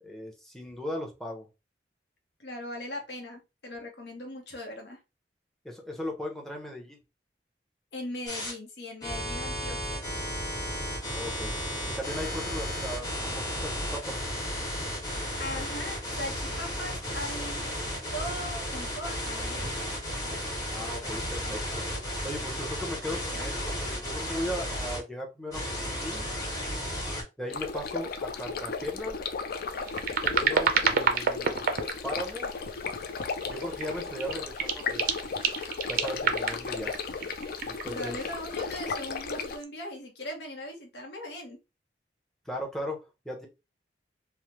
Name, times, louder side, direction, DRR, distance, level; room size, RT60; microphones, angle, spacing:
voice 1, 0.0-1.5 5.6-7.0 11.1-11.5 11.8-14.3 20.7-21.8 22.2-26.2 27.4-29.2 30.2-31.8 32.0-32.5 33.5-35.3 35.9-37.0 37.7-38.2 42.5-43.5, equal, ahead, 2 dB, 0.7 m, -37 dB
voice 2, 2.4-5.0 7.9-10.0 15.4-17.6 18.1-19.7 37.9-41.6, left 1 dB, 70° left, 2 dB, 0.8 m, -39 dB
sound 1, 8.3-8.5 9.0-25.0 25.5-27.2, equal, 20° left, 1.1 m, -34 dB
sound 2, 27.5-39.6, left 5 dB, 55° left, 0.4 m, -35 dB
sound 3, 29.7-32.6 33.1-33.9 34.2-38.7 39.4-39.6, right 6 dB, 55° right, 0.4 m, -29 dB
3.1 x 2.1 x 2.8 m, 0.26 s
head